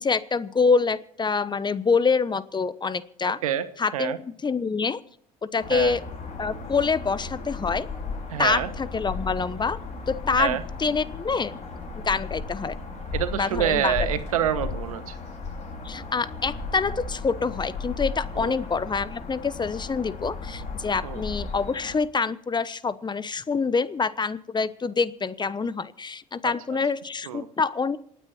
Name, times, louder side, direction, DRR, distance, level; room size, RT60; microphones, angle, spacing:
voice 1, 0.0-3.4 3.8-5.0 5.4-6.0 6.4-7.9 8.4-9.8 10.1-11.5 12.0-12.7 13.3-13.9 15.8-28.0, left 5 dB, 25° left, 16 dB, 1.0 m, -26 dB
sound 1, 5.6-22.0, left 4 dB, 40° left, 5.4 m, -35 dB
voice 2, 8.3-8.7 10.4-10.6 13.1-15.2 18.3-18.6 21.0-21.2 26.4-26.5 27.3-27.5, right 10 dB, 90° right, 12 dB, 1.2 m, -27 dB
27.5 x 9.4 x 4.3 m, 0.65 s
hypercardioid pair, 70°, 18 cm